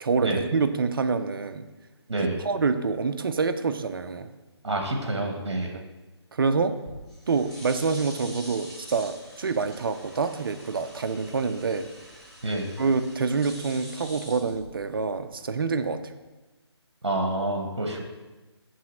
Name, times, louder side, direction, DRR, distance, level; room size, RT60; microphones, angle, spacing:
voice 1, 0.0-1.7 2.4-4.3 5.7-5.8 6.3-6.8 7.3-11.9 12.8-16.0, right 4 dB, 50° right, 10 dB, 0.4 m, -26 dB
voice 2, 4.6-5.7 12.4-12.7 17.0-18.0, right 1 dB, 70° right, 3 dB, 1.0 m, -27 dB
sound 1, 6.7-15.1, equal, 5° left, 0.9 m, -46 dB
5.6 x 3.0 x 5.5 m, 1.2 s
figure-of-eight pair, 150°, 15 cm